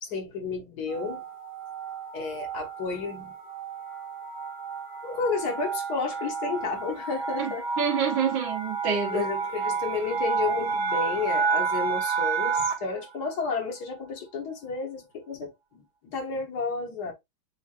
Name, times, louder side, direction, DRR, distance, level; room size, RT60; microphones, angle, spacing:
voice 1, 0.0-1.2 2.1-3.3 5.0-7.6 9.1-17.1, left 4 dB, 60° left, 1.6 m, -32 dB
sound 1, 0.9-13.0, right 5 dB, 65° right, 1.7 m, -30 dB
voice 2, 7.4-9.2, right 7 dB, 90° right, 1.9 m, -27 dB
7.3 x 2.5 x 2.3 m
omnidirectional pair, 2.0 m